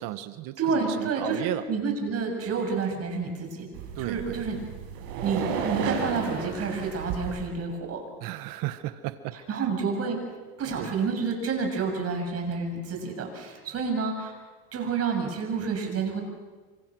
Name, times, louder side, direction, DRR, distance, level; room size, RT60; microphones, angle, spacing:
voice 1, 0.0-1.6 3.9-4.4 8.2-9.7 10.8-10.9, right 15 dB, 70° right, 12 dB, 1.4 m, -34 dB
voice 2, 0.6-3.7 4.0-4.6 5.2-8.0 9.3-10.2 10.6-14.3 14.7-16.2, right 5 dB, 40° right, 3 dB, 7.2 m, -29 dB
sound 1, 3.7-7.5, right 6 dB, 90° right, 6.0 m, -33 dB
29.0 x 25.5 x 6.3 m, 1.4 s
supercardioid pair, 110°, 35 cm